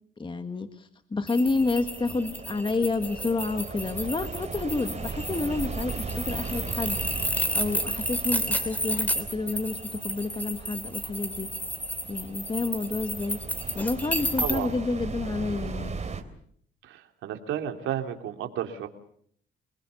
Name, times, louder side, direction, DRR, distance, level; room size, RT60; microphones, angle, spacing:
voice 1, 0.2-7.0 7.5-11.5 12.1-13.4 13.7-16.0, left 3 dB, 25° left, 8 dB, 1.7 m, -29 dB
sound 1, 1.3-14.6, equal, 10° left, 3.2 m, -32 dB
sound 2, 1.4-16.2, right 4 dB, 35° right, 3.4 m, -38 dB
voice 2, 14.4-14.7 16.8-18.9, right 10 dB, 85° right, 5 dB, 3.1 m, -32 dB
28.5 x 20.5 x 7.0 m, 0.64 s
cardioid pair, 90°, 20 cm